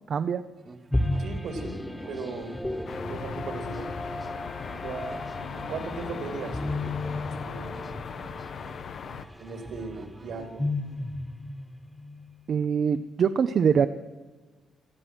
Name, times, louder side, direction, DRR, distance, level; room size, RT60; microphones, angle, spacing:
voice 1, 0.1-0.4 12.5-13.9, right 7 dB, 55° right, 11 dB, 0.6 m, -23 dB
sound 1, 0.6-10.5, right 4 dB, 35° right, 1.3 m, -51 dB
sound 2, 0.9-12.5, left 1 dB, 10° left, 1.3 m, -34 dB
voice 2, 1.2-1.7 2.1-2.5 3.1-3.9 4.7-7.8 9.4-10.7, right 4 dB, 70° right, 5 dB, 2.9 m, -38 dB
sound 3, 2.9-9.3, left 7 dB, 60° left, 0.8 m, -38 dB
17.5 x 12.5 x 6.2 m, 1.3 s
cardioid pair, 90°, 0 cm